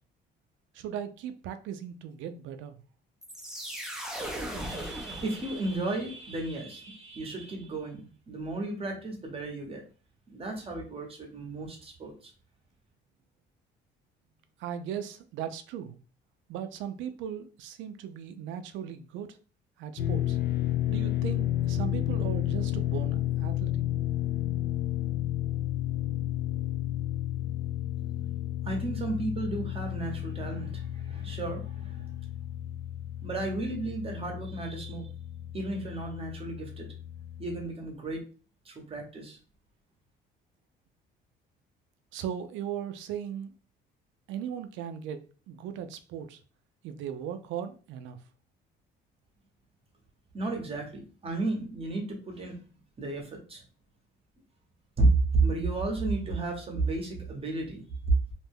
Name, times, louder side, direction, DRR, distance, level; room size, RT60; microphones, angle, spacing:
voice 1, 0.7-2.8 14.6-16.0 16.5-19.4 19.8-20.4 20.9-23.8 42.1-43.5 44.3-46.4 46.8-48.2, right 9 dB, 80° right, 9 dB, 0.4 m, -38 dB
sound 1, 3.2-6.0, right 1 dB, 5° right, 0.5 m, -38 dB
voice 2, 4.6-9.8 10.3-12.3 28.6-32.2 33.2-35.1 35.5-36.9 37.4-38.2 38.6-39.4 50.3-52.6 53.0-53.6 55.0-55.1 55.3-57.8, right 2 dB, 30° right, 2 dB, 0.8 m, -33 dB
sound 2, 20.0-37.6, left 13 dB, 55° left, 0.4 m, -32 dB
2.5 x 2.2 x 3.4 m, 0.37 s
cardioid pair, 130°, 19 cm